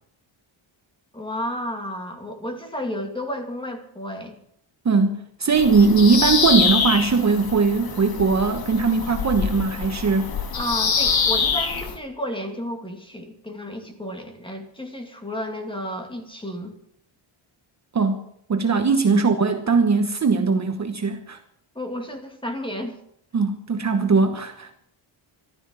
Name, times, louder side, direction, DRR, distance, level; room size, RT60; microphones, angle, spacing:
voice 1, 1.1-4.4 10.5-16.7 18.9-19.2 21.7-23.0, equal, 10° left, 5 dB, 2.3 m, -32 dB
voice 2, 4.8-10.3 17.9-18.2 18.5-21.4 23.3-24.7, right 4 dB, 35° right, 5 dB, 1.2 m, -20 dB
Bird vocalization bird call bird song, 5.5-12.0, left 5 dB, 45° left, 2.0 m, -25 dB
14.5 x 13.0 x 7.6 m, 0.69 s
wide cardioid pair, 175°, 50 cm